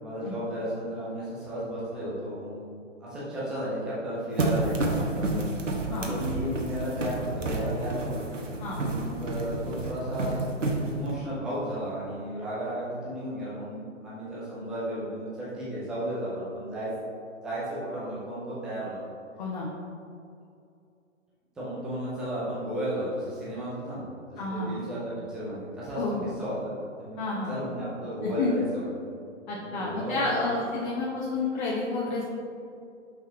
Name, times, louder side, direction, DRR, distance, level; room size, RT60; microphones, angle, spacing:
voice 1, 0.0-2.7 3.0-5.4 5.9-8.2 8.7-10.3 10.9-16.9 17.4-19.0 21.6-28.8 29.6-30.6, equal, ahead, -9 dB, 0.4 m, -34 dB
sound 1, 4.4-11.2, right 2 dB, 75° right, 1.2 m, -30 dB
voice 2, 19.4-19.7 24.4-24.7 25.9-26.2 27.2-27.6 28.2-28.5 29.5-32.2, left 3 dB, 35° left, -4 dB, 1.0 m, -30 dB
5.4 x 5.1 x 4.1 m, 2.5 s
figure-of-eight pair, 125°, 38 cm